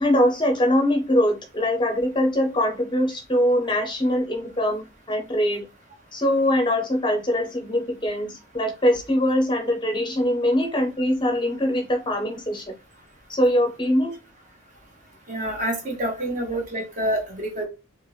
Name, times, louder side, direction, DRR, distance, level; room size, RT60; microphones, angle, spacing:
voice 1, 0.0-5.6 6.1-12.6 13.3-14.1, left 1 dB, 25° left, 4 dB, 0.6 m, -22 dB
voice 2, 15.3-17.6, right 1 dB, 40° right, 2 dB, 1.1 m, -27 dB
3.3 x 2.9 x 3.1 m, 0.29 s
head